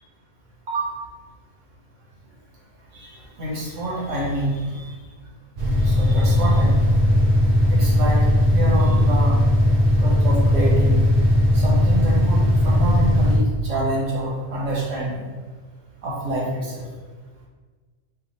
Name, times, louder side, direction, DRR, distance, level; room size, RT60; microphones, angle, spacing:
voice 1, 2.9-4.9 5.8-6.8 7.7-9.4 10.0-11.0 11.5-15.3 16.0-16.8, right 1 dB, 90° right, -4 dB, 1.4 m, -27 dB
sound 1, 5.6-13.4, left 1 dB, 45° right, 0.6 m, -18 dB
3.5 x 2.3 x 4.0 m, 1.4 s
omnidirectional pair, 1.2 m